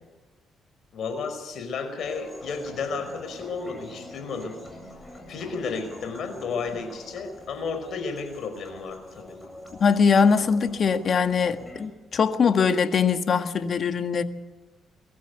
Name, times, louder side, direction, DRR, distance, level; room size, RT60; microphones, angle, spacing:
voice 1, 0.9-4.6 5.3-9.4, left 5 dB, 65° left, 5.1 m, -33 dB
sound 1, 2.0-11.9, left 1 dB, 15° left, 7.7 m, -44 dB
voice 2, 9.8-14.2, left 6 dB, 50° left, 1.6 m, -22 dB
23.5 x 14.0 x 8.1 m
cardioid pair, 90°, 0 cm